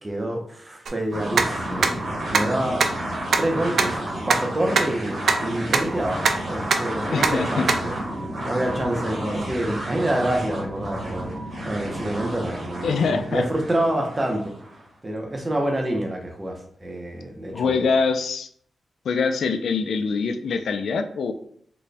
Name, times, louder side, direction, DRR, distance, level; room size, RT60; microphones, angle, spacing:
voice 1, 0.0-1.9 2.3-2.8 3.4-8.0 8.4-11.3 11.6-14.5 15.0-17.9, right 1 dB, 20° right, 2 dB, 0.6 m, -27 dB
sound 1, 0.9-1.0 1.4-1.5 1.8-1.9 2.3-2.4 2.8-2.9 3.3-3.4 3.8-3.9 4.3-4.4 4.8-4.9 5.3-5.4 5.7-5.8 6.3-6.4 6.7-6.8 7.2-7.3 7.7-7.8, right 5 dB, 65° right, 0.3 m, -18 dB
sound 2, 1.1-14.8, right 1 dB, 50° right, 1.1 m, -31 dB
voice 2, 7.1-7.6 12.8-13.4 17.5-18.5 19.1-21.3, left 5 dB, 90° left, 7 dB, 0.3 m, -24 dB
4.0 x 2.1 x 3.3 m, 0.62 s
wide cardioid pair, 160°, 0 cm